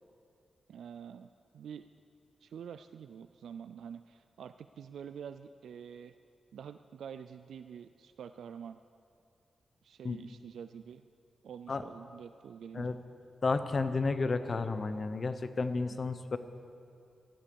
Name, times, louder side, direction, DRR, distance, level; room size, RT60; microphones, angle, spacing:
voice 1, 0.7-1.9 2.4-6.2 6.5-8.8 9.8-11.1 11.4-13.0, right 7 dB, 90° right, 11 dB, 0.4 m, -47 dB
voice 2, 13.4-16.4, left 3 dB, 35° left, 10 dB, 0.8 m, -32 dB
15.0 x 13.0 x 7.0 m, 2.5 s
wide cardioid pair, 145°, 0 cm